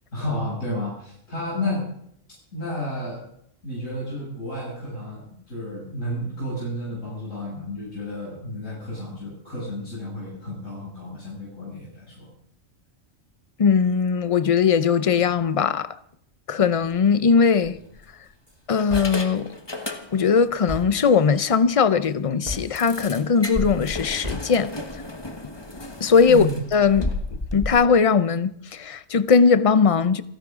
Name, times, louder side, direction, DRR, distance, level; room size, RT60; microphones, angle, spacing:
voice 1, 0.1-1.9 2.5-3.3 3.6-12.3 26.3-26.5, left 1 dB, 80° left, 7.7 m, -31 dB
voice 2, 13.6-15.9 16.5-17.8 18.7-19.5 20.1-24.7 26.0-27.1 27.5-30.2, left 5 dB, 35° left, 0.6 m, -19 dB
sound 1, 16.7-17.0 17.6-18.3 18.8-20.4 20.8-20.9 21.3-21.4 21.7-21.8 22.8-27.7, left 2 dB, 20° left, 1.2 m, -33 dB
sound 2, 18.0-18.6 18.9-24.9, left 1 dB, 30° right, 7.0 m, -38 dB
29.0 x 11.0 x 3.7 m
omnidirectional pair, 1.3 m